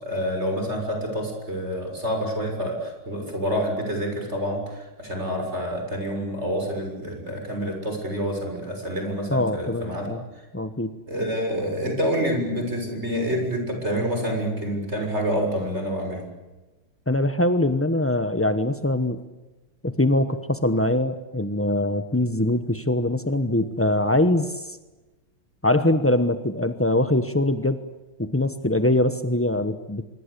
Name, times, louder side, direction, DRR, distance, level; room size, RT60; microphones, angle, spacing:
voice 1, 0.0-10.1 11.1-16.3, equal, 30° right, 3 dB, 7.0 m, -27 dB
voice 2, 9.3-10.2 10.5-10.9 17.1-19.2 19.8-24.8 25.6-27.8 28.2-30.0, left 1 dB, 15° left, 10 dB, 0.4 m, -23 dB
26.0 x 23.5 x 8.5 m, 1.1 s
omnidirectional pair, 2.3 m